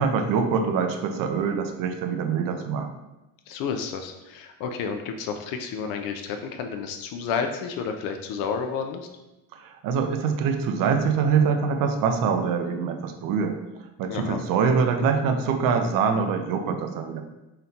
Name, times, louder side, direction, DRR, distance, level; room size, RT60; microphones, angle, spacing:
voice 1, 0.0-2.9 9.5-13.6 14.0-17.2, right 6 dB, 60° right, 5 dB, 0.6 m, -24 dB
voice 2, 3.5-9.1 14.1-14.4, left 6 dB, 65° left, 5 dB, 0.5 m, -31 dB
4.0 x 2.1 x 4.1 m, 0.99 s
cardioid pair, 110°, 37 cm